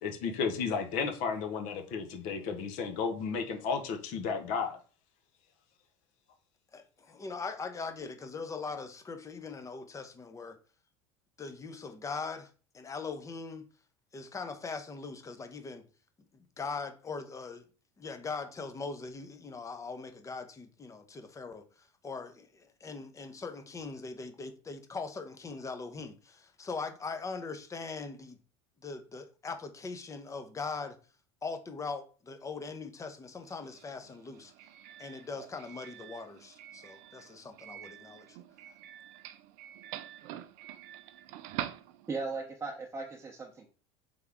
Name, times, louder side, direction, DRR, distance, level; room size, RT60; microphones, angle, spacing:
voice 1, 0.0-4.8, left 5 dB, 60° left, 0.8 m, -33 dB
voice 2, 6.7-10.6 11.4-13.6 14.1-15.8 16.3-17.6 18.0-28.4 28.8-31.0 31.4-34.5 35.0-38.4, left 4 dB, 20° left, 0.7 m, -41 dB
Doorbell, 33.4-42.4, right 12 dB, 60° right, 0.4 m, -46 dB
voice 3, 42.1-43.7, right 4 dB, 20° right, 0.8 m, -37 dB
3.5 x 3.5 x 3.5 m
hypercardioid pair, 85°, 15 cm